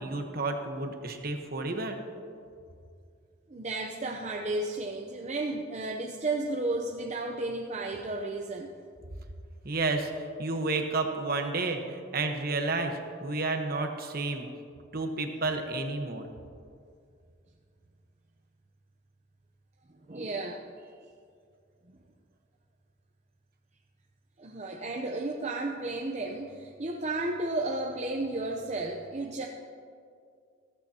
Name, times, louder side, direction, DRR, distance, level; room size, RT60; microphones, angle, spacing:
voice 1, 0.0-2.0 9.6-14.5 14.9-16.3, right 3 dB, 50° right, 5 dB, 1.1 m, -31 dB
voice 2, 3.5-8.7 20.1-20.6 24.4-29.5, right 2 dB, 35° right, 1 dB, 0.7 m, -33 dB
15.0 x 15.0 x 2.9 m, 2.3 s
head